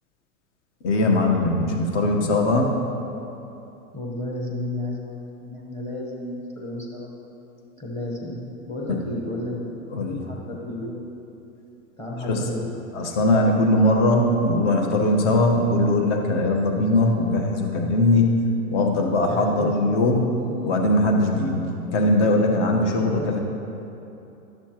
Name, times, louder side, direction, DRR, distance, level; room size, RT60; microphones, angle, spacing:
voice 1, 0.8-2.7 8.9-9.0 9.9-10.2 12.2-12.4 12.9-18.3 18.7-20.3 20.6-23.4, left 1 dB, 55° left, 2 dB, 1.3 m, -20 dB
voice 2, 3.9-7.1 7.8-9.8 10.1-11.1 12.0-12.7 19.3-19.9 20.5-20.7 22.9-23.4, left 2 dB, 15° left, -2 dB, 1.1 m, -32 dB
12.0 x 6.9 x 3.0 m, 2.9 s
hypercardioid pair, 120°, 43 cm